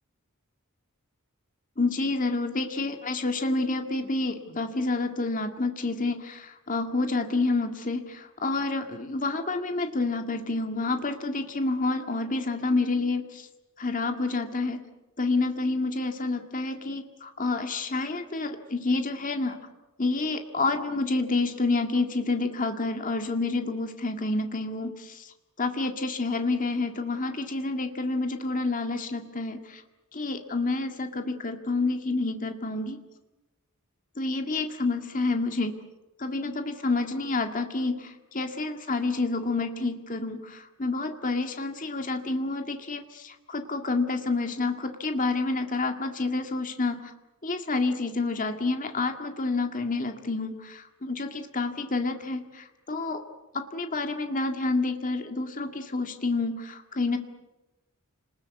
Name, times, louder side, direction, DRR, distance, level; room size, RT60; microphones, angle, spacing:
voice 1, 1.8-13.5 13.8-14.8 15.2-19.6 20.0-25.3 25.6-29.8 30.1-33.0 34.2-35.7 36.2-47.1 47.4-53.2 53.5-57.2, left 3 dB, 35° left, 5 dB, 2.0 m, -29 dB
29.0 x 20.5 x 8.3 m, 1.0 s
head